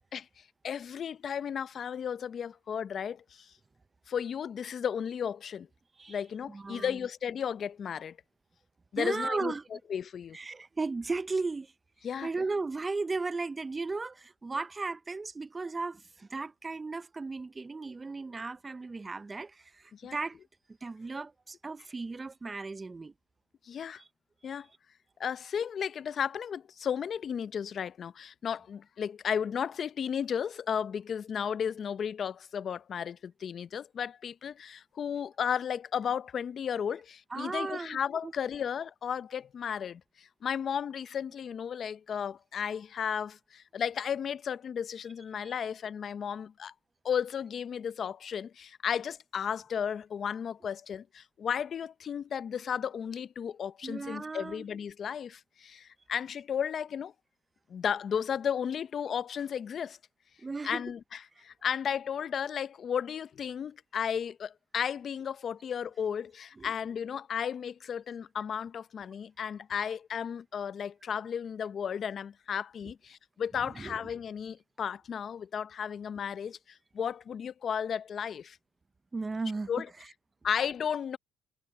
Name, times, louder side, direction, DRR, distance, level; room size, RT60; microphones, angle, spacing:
voice 1, 0.1-3.5 4.1-5.7 6.1-8.2 8.9-9.5 9.9-10.4 12.0-12.3 19.9-20.2 23.6-24.0 24.4-24.7 25.2-46.7 47.0-57.1 57.7-60.0 60.6-78.6 79.7-79.9 80.4-81.2, left 8 dB, 50° left, 0.7 m, -34 dB
voice 2, 6.5-6.9 9.0-9.7 10.3-11.7 12.2-20.4 20.8-23.1 24.4-24.6 37.3-38.3 45.4-45.5 53.8-54.7 60.4-60.8 66.6-66.7 73.6-74.1 79.1-79.7, right 3 dB, 25° right, 0.8 m, -36 dB
supercardioid pair, 80°, 0 cm